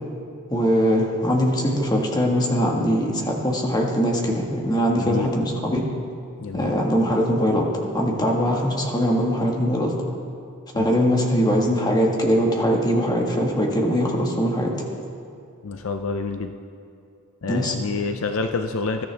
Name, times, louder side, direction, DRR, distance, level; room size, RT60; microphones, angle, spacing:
voice 1, 0.5-5.9 6.5-7.7 7.9-9.9 10.7-14.7 17.5-17.7, equal, 20° left, 0 dB, 1.6 m, -21 dB
voice 2, 5.0-5.3 6.4-6.7 10.7-11.0 15.6-16.5 17.4-19.1, left 4 dB, 65° left, 6 dB, 0.6 m, -28 dB
20.5 x 13.0 x 3.4 m, 2.5 s
head